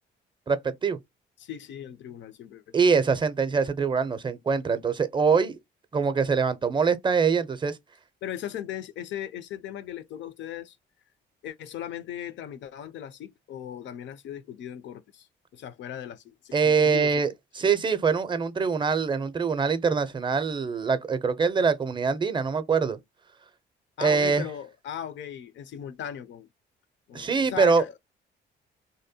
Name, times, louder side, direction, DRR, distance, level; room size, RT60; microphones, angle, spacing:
voice 1, 0.5-1.0 2.7-5.6 5.9-7.8 16.5-23.0 24.0-24.4 27.1-28.0, right 5 dB, 25° right, 0.5 m, -24 dB
voice 2, 1.4-2.8 8.2-10.8 11.4-15.3 15.5-17.3 24.0-26.5 27.1-28.0, left 10 dB, 70° left, 0.5 m, -38 dB
2.7 x 2.1 x 2.6 m
cardioid pair, 90°, 20 cm